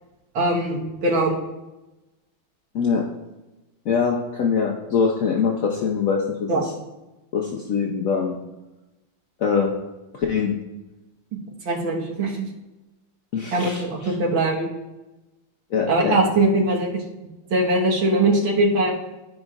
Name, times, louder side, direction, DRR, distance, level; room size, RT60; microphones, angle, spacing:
voice 1, 0.3-1.4 6.5-6.6 11.7-12.5 13.5-14.7 15.9-17.0 17.5-19.0, right 2 dB, 70° right, -2 dB, 2.1 m, -21 dB
voice 2, 3.9-6.5 7.3-8.4 9.4-9.7 10.1-10.6 13.3-14.1 15.7-16.2, left 6 dB, 75° left, 0 dB, 0.7 m, -23 dB
13.5 x 5.2 x 2.4 m, 1.0 s
omnidirectional pair, 2.4 m